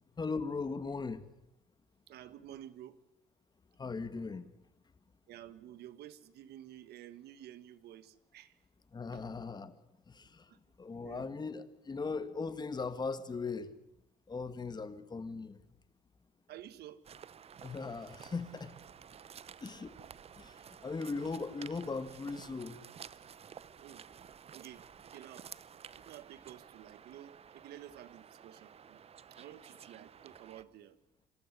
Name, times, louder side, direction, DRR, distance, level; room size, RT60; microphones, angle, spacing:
voice 1, 0.2-1.2 3.8-4.5 8.9-9.8 10.1-10.5 10.8-13.7 14.3-15.6 17.6-18.8 19.6-19.9 20.4-22.8, left 4 dB, 25° left, 12 dB, 1.8 m, -39 dB
voice 2, 2.1-3.0 5.3-8.6 9.1-9.2 10.5-10.6 11.0-11.3 16.5-17.0 23.8-24.1 24.5-25.5 26.0-29.0 29.3-31.0, right 12 dB, 75° right, 15 dB, 1.5 m, -51 dB
sound 1, 17.0-30.6, right 8 dB, 35° right, 0.7 m, -53 dB
25.5 x 14.0 x 9.8 m, 0.86 s
cardioid pair, 110°, 17 cm